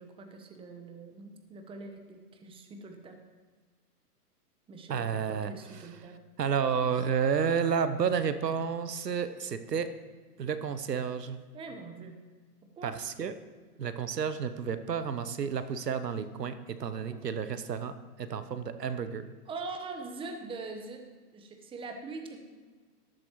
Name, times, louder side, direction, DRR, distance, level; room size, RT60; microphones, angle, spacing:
voice 1, 0.0-3.2 4.7-6.2 11.5-12.2 12.8-13.0 17.1-17.2 19.5-21.0 21.3-22.4, right 3 dB, 10° right, 5 dB, 1.0 m, -43 dB
voice 2, 4.9-5.9 6.4-9.9 10.4-11.4 12.8-13.3 13.8-19.2, right 7 dB, 90° right, 11 dB, 0.9 m, -31 dB
13.0 x 12.0 x 3.1 m, 1.4 s
hypercardioid pair, 125°, 47 cm